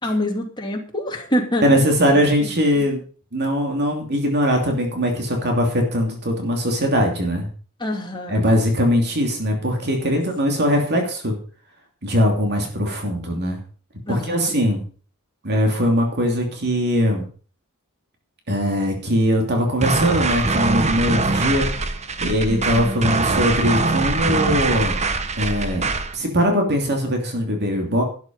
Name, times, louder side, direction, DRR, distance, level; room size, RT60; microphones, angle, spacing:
voice 1, 0.0-1.6 2.4-2.5 7.8-8.4 10.0-10.2 14.1-14.5 22.5-22.9, equal, 20° left, 1 dB, 2.7 m, -26 dB
voice 2, 1.6-3.0 3.3-7.5 8.3-11.4 12.0-13.6 14.1-14.8 15.4-17.2 18.5-21.7 22.2-25.0 25.4-25.9 26.1-28.0, equal, 50° right, 2 dB, 3.0 m, -21 dB
sound 1, 19.8-26.1, right 3 dB, 30° right, 1.0 m, -22 dB
12.0 x 9.6 x 5.5 m, 0.41 s
head